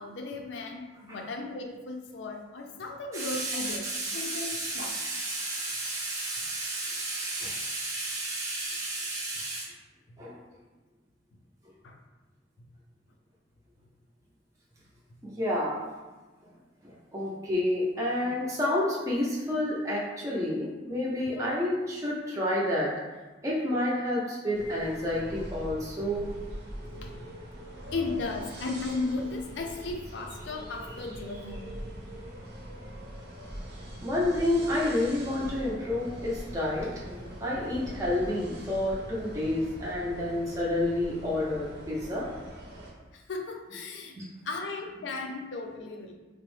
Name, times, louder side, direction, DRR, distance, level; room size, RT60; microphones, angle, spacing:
voice 1, 0.0-3.9 4.1-4.9 9.3-9.4 10.1-10.2 11.8-12.0 18.6-18.7 21.4-21.7 26.8-27.2 27.9-31.8 43.1-44.2 44.4-46.1, left 3 dB, 65° left, 2 dB, 0.4 m, -36 dB
voice 2, 3.1-9.7 10.2-10.4 15.2-15.8 16.8-22.9 23.4-26.3 34.0-42.3 44.2-44.3, left 1 dB, 15° right, -6 dB, 0.4 m, -30 dB
sound 1, 24.5-42.9, equal, 60° right, 0.6 m, -42 dB
3.8 x 2.0 x 3.1 m, 1.2 s
head